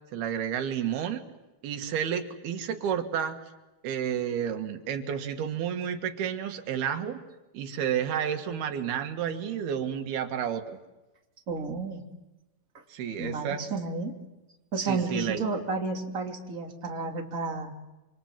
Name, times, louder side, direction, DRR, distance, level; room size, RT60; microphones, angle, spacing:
voice 1, 0.1-1.2 1.6-3.4 3.8-7.2 7.5-10.8 12.9-13.6 14.9-15.4, right 8 dB, 85° right, 6 dB, 3.7 m, -31 dB
voice 2, 11.5-12.0 13.2-14.1 14.7-17.7, right 3 dB, 25° right, 1 dB, 3.0 m, -31 dB
28.0 x 26.0 x 7.6 m, 1.0 s
omnidirectional pair, 4.3 m